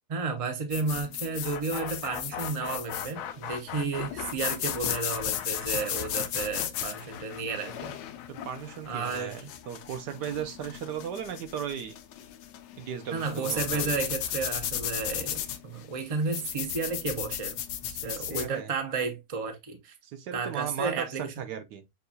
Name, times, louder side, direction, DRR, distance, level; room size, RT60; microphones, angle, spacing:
voice 1, 0.1-8.0 8.9-9.5 13.1-17.5 17.9-19.9 20.3-21.3, right 4 dB, 45° right, 0.4 m, -32 dB
sound 1, 0.7-18.5, left 10 dB, 90° left, 1.2 m, -35 dB
sound 2, 1.4-11.3, left 9 dB, 70° left, 0.8 m, -40 dB
voice 2, 8.3-9.4 9.7-11.9 12.8-13.9 18.0-18.7 20.0-21.1 21.4-21.8, right 8 dB, 80° right, 1.3 m, -36 dB
6.6 x 2.3 x 2.6 m
omnidirectional pair, 1.8 m